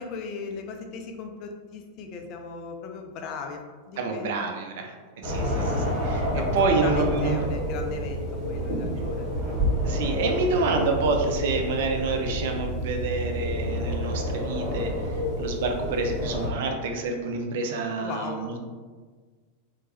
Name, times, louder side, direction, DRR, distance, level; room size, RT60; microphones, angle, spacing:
voice 1, 0.0-3.6 3.9-4.3 5.4-5.7 6.3-6.6 6.8-9.3 18.0-18.5, left 5 dB, 40° left, 4 dB, 0.3 m, -37 dB
voice 2, 4.0-5.0 5.2-5.7 6.0-7.5 9.8-18.6, right 3 dB, 55° right, 4 dB, 0.4 m, -28 dB
sound 1, 5.2-16.5, equal, 25° right, 1.1 m, -29 dB
3.1 x 2.0 x 2.8 m, 1.4 s
figure-of-eight pair, 90°, 0 cm